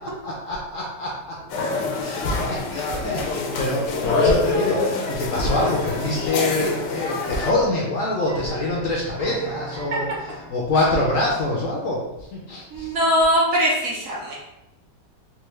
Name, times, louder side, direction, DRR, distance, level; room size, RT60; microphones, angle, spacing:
voice 1, 0.0-1.4 2.0-4.8 5.1-10.1 10.5-12.9, left 1 dB, 65° left, -3 dB, 0.8 m, -25 dB
sound 1, 1.0-10.5, right 1 dB, 30° right, 1.2 m, -40 dB
sound 2, 1.5-7.5, left 3 dB, 80° left, 1.2 m, -25 dB
voice 2, 12.7-14.3, equal, 60° right, -3 dB, 1.0 m, -21 dB
3.6 x 2.7 x 3.1 m, 0.94 s
omnidirectional pair, 1.9 m